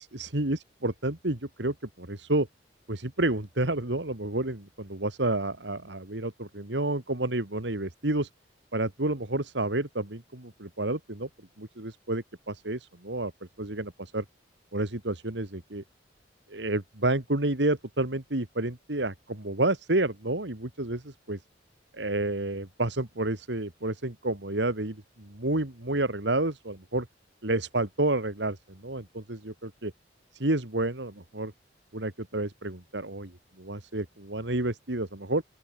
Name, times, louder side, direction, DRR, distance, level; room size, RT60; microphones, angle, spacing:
voice 1, 0.0-2.5 2.9-8.3 8.7-11.3 11.6-13.3 13.6-14.2 14.7-15.8 16.5-21.4 21.9-27.1 27.4-29.9 30.3-31.5 31.9-33.3 33.6-35.4, right 2 dB, 70° right, 2.6 m, -30 dB
open air
head